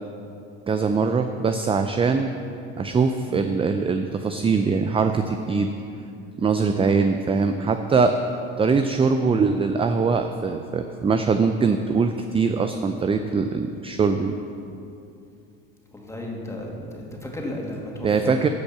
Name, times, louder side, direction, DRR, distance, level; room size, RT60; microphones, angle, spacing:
voice 1, 0.7-2.3 2.8-5.7 6.4-8.1 8.6-14.4 18.0-18.5, right 4 dB, 15° right, 7 dB, 0.5 m, -22 dB
voice 2, 15.9-18.4, left 1 dB, 10° left, -2 dB, 2.3 m, -34 dB
15.5 x 5.3 x 5.8 m, 2.6 s
hypercardioid pair, 85°, 32 cm